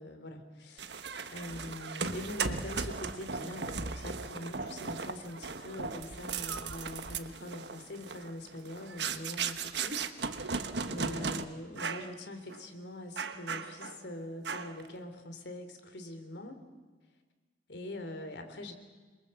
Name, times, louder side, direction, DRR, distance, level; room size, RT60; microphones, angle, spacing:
voice 1, 0.0-16.6 17.7-18.7, left 1 dB, 75° left, 7 dB, 3.1 m, -43 dB
sound 1, 0.8-11.4 11.8-12.1 12.5-12.6 13.2-14.0 14.4-14.9, right 5 dB, 75° right, 1.3 m, -37 dB
27.0 x 23.0 x 7.6 m, 1.4 s
head